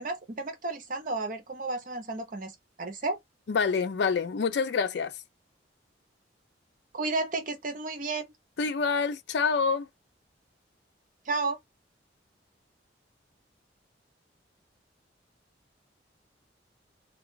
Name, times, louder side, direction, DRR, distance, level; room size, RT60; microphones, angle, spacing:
voice 1, 0.0-2.5 2.8-3.2 6.9-8.3 11.3-11.6, right 3 dB, 45° right, 0.8 m, -32 dB
voice 2, 3.5-5.1 8.6-9.9, left 5 dB, 65° left, 0.4 m, -27 dB
2.4 x 2.3 x 3.7 m
head